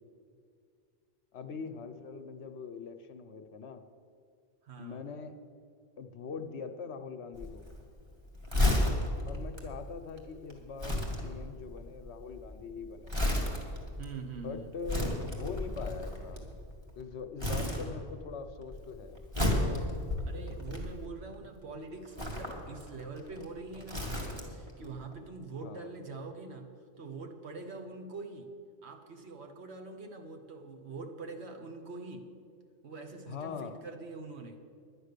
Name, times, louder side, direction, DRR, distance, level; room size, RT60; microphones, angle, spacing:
voice 1, 1.3-3.8 4.8-5.4 6.0-7.7 9.3-13.2 14.4-16.4 17.0-19.2 25.6-25.9 33.3-33.8, left 5 dB, 70° left, 8 dB, 1.0 m, -42 dB
voice 2, 4.6-5.0 8.5-9.0 14.0-14.7 20.2-26.7 27.0-28.5 28.8-32.2 32.8-34.6, right 3 dB, 65° right, 5 dB, 1.3 m, -44 dB
Crumpling crinkling, 7.3-17.0 17.4-18.3 18.6-21.3 22.0-24.7 25.0-25.1, left 1 dB, 25° right, 1.9 m, -33 dB
11.0 x 9.7 x 6.7 m, 2.2 s
omnidirectional pair, 1.2 m